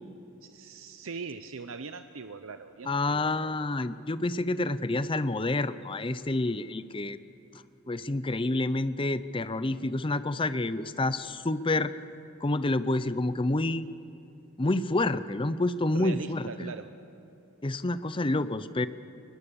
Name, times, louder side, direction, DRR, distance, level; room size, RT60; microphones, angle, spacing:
voice 1, 0.4-3.6 15.9-16.9, right 4 dB, 80° right, 9 dB, 0.7 m, -41 dB
voice 2, 2.9-7.2 7.9-11.9 12.4-13.9 14.6-16.7 17.6-18.9, left 2 dB, 25° left, 14 dB, 0.6 m, -28 dB
22.0 x 21.0 x 7.0 m, 3.0 s
head